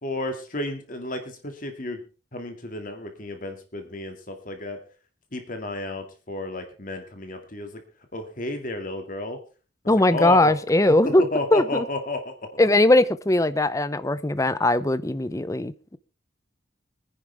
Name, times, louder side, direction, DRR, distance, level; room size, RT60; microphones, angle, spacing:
voice 1, 0.0-2.0 2.3-4.8 5.3-7.8 8.1-9.4 9.8-10.5 11.3-12.3, left 2 dB, 45° left, 2.2 m, -32 dB
voice 2, 9.9-11.2 11.5-11.8 12.6-16.0, left 1 dB, 15° left, 0.6 m, -20 dB
24.5 x 10.0 x 3.4 m
head